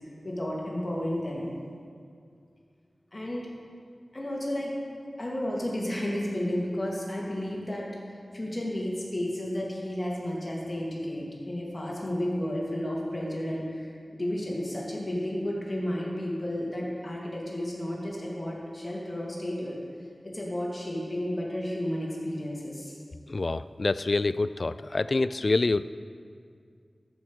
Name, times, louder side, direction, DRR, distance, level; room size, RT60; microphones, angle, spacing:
voice 1, 0.2-1.5 3.1-3.5 4.1-4.7 5.2-19.8 20.2-23.0, left 1 dB, 35° left, -3 dB, 2.7 m, -32 dB
voice 2, 23.3-25.8, left 3 dB, 55° left, 15 dB, 0.3 m, -26 dB
13.5 x 5.9 x 6.3 m, 2.2 s
wide cardioid pair, 50°, 0 cm